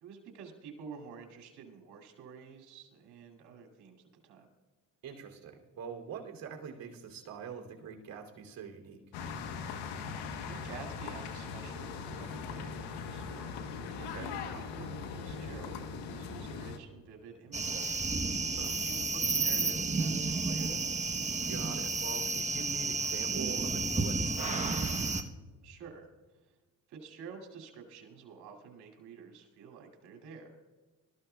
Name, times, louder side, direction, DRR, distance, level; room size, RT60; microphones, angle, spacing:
voice 1, 0.0-4.5 10.4-13.6 14.4-18.0 18.8-21.0 25.6-26.1 26.4-26.6 26.9-30.6, right 5 dB, 80° right, 2 dB, 2.6 m, -50 dB
voice 2, 5.0-9.0 14.0-14.4 18.6-18.7 21.4-24.7, right 6 dB, 60° right, 1 dB, 3.0 m, -44 dB
sound 1, 9.1-16.8, left 5 dB, 80° left, 1.2 m, -40 dB
sound 2, 17.5-25.2, right 3 dB, 20° right, 1.0 m, -31 dB
20.0 x 13.5 x 2.3 m, 1.3 s
supercardioid pair, 70°, 39 cm